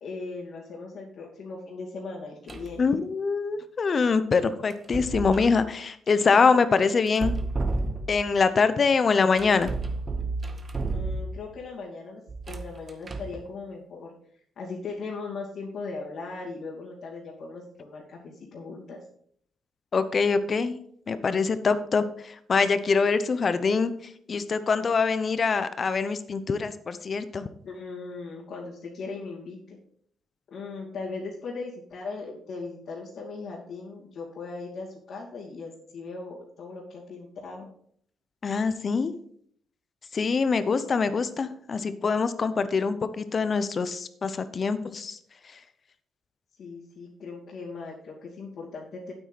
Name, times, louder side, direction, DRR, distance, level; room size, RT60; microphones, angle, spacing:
voice 1, 0.0-2.9 10.9-14.1 14.6-19.0 27.6-29.8 30.5-37.7 46.6-49.1, left 3 dB, 60° left, -6 dB, 2.7 m, -38 dB
sound 1, 2.5-2.8 4.7-5.6 7.1-8.4 9.4-11.6 12.3-13.4, right 3 dB, 35° right, 0.9 m, -31 dB
voice 2, 2.8-7.3 8.1-9.7 19.9-20.8 21.1-27.5 38.4-39.1 40.1-45.2, left 5 dB, 40° left, 12 dB, 0.8 m, -24 dB
9.0 x 8.5 x 4.2 m, 0.64 s
cardioid pair, 90°, 0 cm